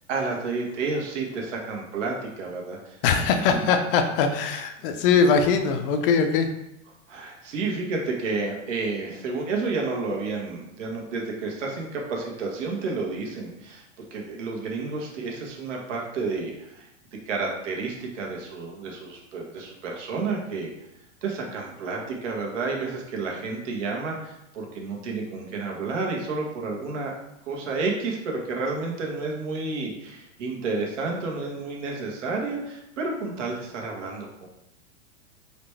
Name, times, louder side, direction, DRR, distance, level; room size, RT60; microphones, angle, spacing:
voice 1, 0.1-3.0 3.5-3.7 7.1-13.8 14.1-16.9 17.2-20.7 21.2-27.1 27.4-34.5, right 3 dB, 70° right, 0 dB, 1.3 m, -30 dB
voice 2, 3.0-6.5, left 5 dB, 45° left, 6 dB, 0.5 m, -21 dB
4.0 x 3.3 x 3.2 m, 0.85 s
hypercardioid pair, 125°, 39 cm